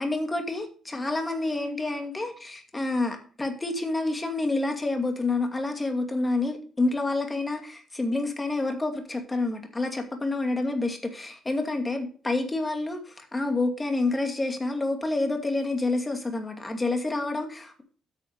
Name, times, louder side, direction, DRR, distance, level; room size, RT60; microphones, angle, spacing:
voice 1, 0.0-17.8, left 2 dB, 20° left, 4 dB, 2.4 m, -28 dB
9.3 x 6.3 x 5.2 m, 0.41 s
cardioid pair, 90°, 0 cm